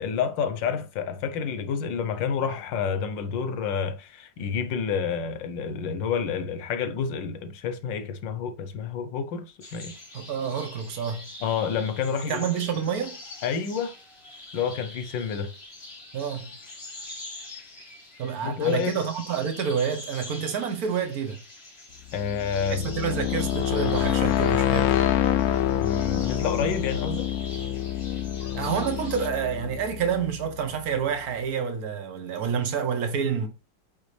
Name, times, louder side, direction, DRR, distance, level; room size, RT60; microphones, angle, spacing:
voice 1, 0.0-9.9 11.4-12.4 13.4-13.9 14.5-15.5 18.4-18.9 22.1-22.9 25.8-27.3, left 6 dB, 90° left, 1.6 m, -29 dB
sound 1, 9.6-29.3, left 2 dB, 35° left, 1.6 m, -44 dB
voice 2, 10.1-11.2 12.3-13.2 16.1-16.5 18.2-21.4 22.8-25.0 28.5-33.5, right 7 dB, 55° right, 1.5 m, -28 dB
sound 2, 22.1-30.9, left 11 dB, 70° left, 0.9 m, -26 dB
8.4 x 3.6 x 3.3 m
omnidirectional pair, 2.0 m